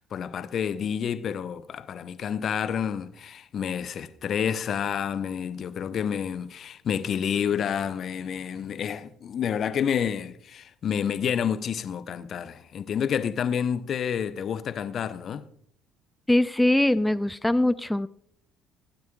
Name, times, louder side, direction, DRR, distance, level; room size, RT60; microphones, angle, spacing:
voice 1, 0.0-15.4, left 8 dB, 50° left, 0.6 m, -29 dB
voice 2, 16.3-18.1, left 1 dB, 5° left, 0.4 m, -22 dB
16.5 x 9.5 x 2.3 m
figure-of-eight pair, 50°, 0 cm